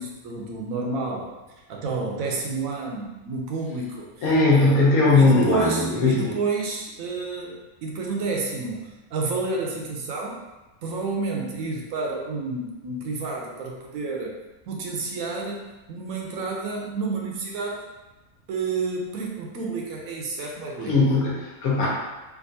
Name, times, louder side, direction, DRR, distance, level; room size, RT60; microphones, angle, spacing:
voice 1, 0.0-1.3 1.7-4.1 4.5-4.8 5.1-8.8 9.1-10.4 10.8-14.4 14.7-17.9 18.5-20.9, right 3 dB, 75° right, -1 dB, 1.0 m, -30 dB
voice 2, 4.2-6.3 20.9-21.9, left 3 dB, 85° left, -5 dB, 1.4 m, -19 dB
3.5 x 2.5 x 2.6 m, 1.1 s
omnidirectional pair, 1.5 m